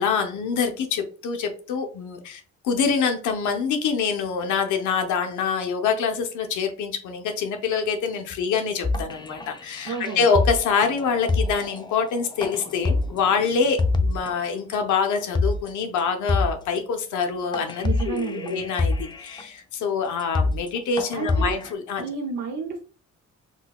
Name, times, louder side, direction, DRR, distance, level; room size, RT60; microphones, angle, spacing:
voice 1, 0.0-22.0, left 5 dB, 75° left, 5 dB, 0.7 m, -25 dB
sound 1, 8.8-14.3 14.7-14.8 15.2-15.7 16.0-16.1 16.3-16.8 17.2-17.3 17.5-19.4 19.8-19.9 20.2-20.7 21.0-21.7, left 3 dB, 15° left, 0.3 m, -26 dB
voice 2, 9.9-10.3 17.8-18.6 21.1-21.6 22.0-22.8, right 5 dB, 65° right, 2 dB, 0.6 m, -31 dB
3.8 x 2.2 x 2.2 m, 0.38 s
cardioid pair, 90°, 30 cm